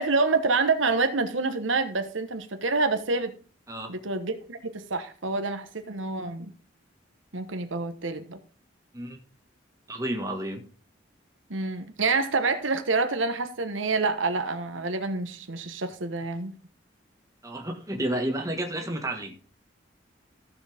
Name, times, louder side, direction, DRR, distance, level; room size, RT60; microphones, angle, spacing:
voice 1, 0.0-3.3 3.9-6.5 7.3-8.4 11.5-16.5, right 3 dB, 80° right, 1.2 m, -27 dB
voice 2, 3.7-4.0 8.9-9.2 9.9-10.7 17.4-19.4, right 1 dB, 15° right, 1.6 m, -31 dB
14.5 x 7.1 x 3.5 m
head